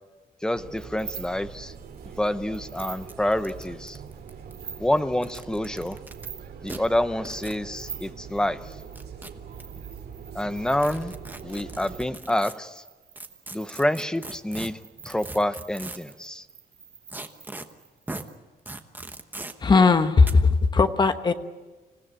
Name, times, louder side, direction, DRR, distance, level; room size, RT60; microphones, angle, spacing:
voice 1, 0.4-1.7 2.0-4.0 4.8-6.0 6.6-8.8 10.3-11.1 11.4-12.8 13.5-14.8 15.0-16.5, left 1 dB, 5° left, 11 dB, 0.7 m, -27 dB
sound 1, 0.5-12.1, right 6 dB, 75° right, 3.9 m, -43 dB
sound 2, 0.8-1.5 1.9-2.2 2.5-3.1 3.4-4.2 4.5-5.1 5.8-6.5 6.7-6.9 7.3-9.0 9.5-18.4, right 6 dB, 40° right, 2.3 m, -45 dB
sound 3, 2.0-2.1 2.3-2.4 2.8-2.9 3.1-4.5 5.1-6.3 6.7-6.8 7.2-7.6 8.7-9.6 10.8-12.5 13.2-16.1 17.1-17.7 18.1-18.2 18.7-19.5 20.2-20.3, right 2 dB, 10° right, 1.1 m, -39 dB
voice 2, 19.6-21.3, left 4 dB, 25° left, 9 dB, 1.1 m, -18 dB
26.5 x 16.5 x 8.9 m, 1.3 s
wide cardioid pair, 170°, 17 cm